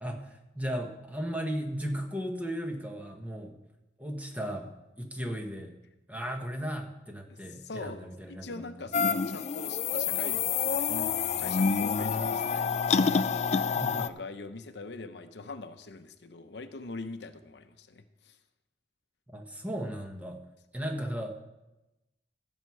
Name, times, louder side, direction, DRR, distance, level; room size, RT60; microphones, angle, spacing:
voice 1, 0.0-3.5 4.0-5.7 6.1-8.8 13.7-14.1 19.3-20.4 20.7-21.3, equal, 10° right, 3 dB, 1.3 m, -36 dB
voice 2, 7.3-18.4, left 3 dB, 75° left, 9 dB, 0.8 m, -43 dB
sound 1, 8.9-14.1, left 5 dB, 40° left, 0.4 m, -27 dB
15.5 x 7.3 x 4.7 m, 0.97 s
head